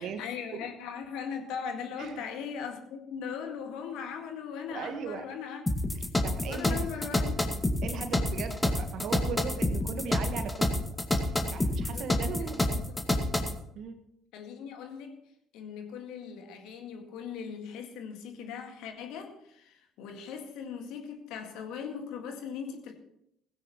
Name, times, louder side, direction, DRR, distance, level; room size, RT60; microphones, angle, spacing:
voice 1, 0.0-5.7 6.5-7.5 11.8-12.1 12.4-13.2 14.3-15.2 15.5-22.9, left 7 dB, 65° left, 1.9 m, -39 dB
voice 2, 4.7-5.3 6.2-6.9 7.8-10.8 11.2-12.9 13.7-14.0, right 6 dB, 55° right, 1.5 m, -38 dB
sound 1, 5.7-13.6, left 1 dB, 15° left, 2.0 m, -28 dB
17.5 x 15.5 x 3.1 m
figure-of-eight pair, 50°, 0 cm